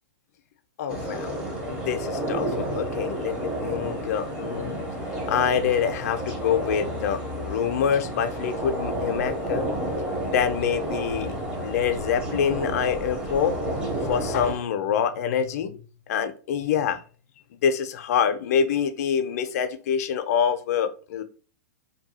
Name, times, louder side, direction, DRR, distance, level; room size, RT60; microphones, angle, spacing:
voice 1, 0.8-1.4 1.7-4.8 5.3-9.7 10.2-13.6 14.0-15.8 16.1-17.0 17.6-21.2, left 7 dB, 60° left, 9 dB, 0.5 m, -26 dB
sound 1, 0.9-14.5, right 1 dB, 10° right, 0.7 m, -31 dB
2.7 x 2.2 x 2.8 m, 0.38 s
hypercardioid pair, 135°, 9 cm